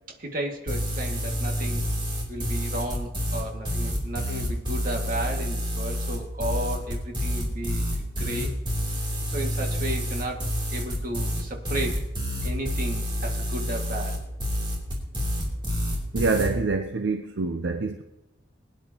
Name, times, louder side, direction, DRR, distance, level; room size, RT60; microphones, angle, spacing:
voice 1, 0.2-1.8 2.3-8.5 9.3-12.0 12.4-14.2, right 1 dB, 50° right, 1.9 m, -33 dB
sound 1, 0.7-16.5, equal, 25° right, 3.1 m, -28 dB
voice 2, 16.1-18.0, right 3 dB, 70° right, 0.6 m, -26 dB
22.0 x 10.0 x 2.9 m
head